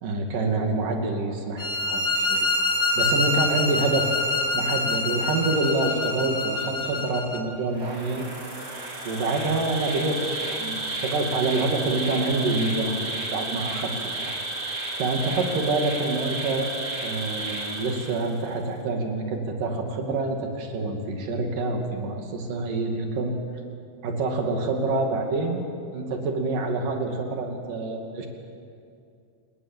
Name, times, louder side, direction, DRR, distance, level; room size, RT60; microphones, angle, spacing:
voice 1, 0.0-2.5 3.0-4.1 4.5-8.3 9.0-13.0 13.3-14.3 15.0-16.7 17.0-23.4 24.0-25.6 25.9-28.3, right 3 dB, 80° right, 3 dB, 4.1 m, -27 dB
sound 1, 1.6-7.4, left 2 dB, 20° left, 1.6 m, -25 dB
Insect, 7.7-18.5, right 2 dB, 40° right, 4.3 m, -32 dB
28.5 x 19.0 x 7.6 m, 2.4 s
omnidirectional pair, 3.8 m